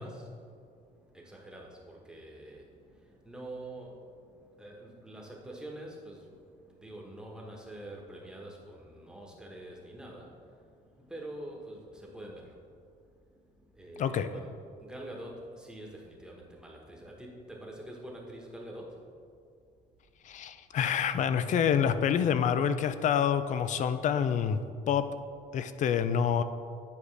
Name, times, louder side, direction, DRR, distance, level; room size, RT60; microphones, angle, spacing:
voice 1, 0.0-19.4 20.3-20.4, right 1 dB, 5° right, -2 dB, 1.2 m, -46 dB
voice 2, 20.2-24.6 24.9-25.1 25.5-26.4, left 8 dB, 45° left, 11 dB, 0.4 m, -27 dB
9.5 x 4.8 x 3.3 m, 2.3 s
cardioid pair, 110°, 17 cm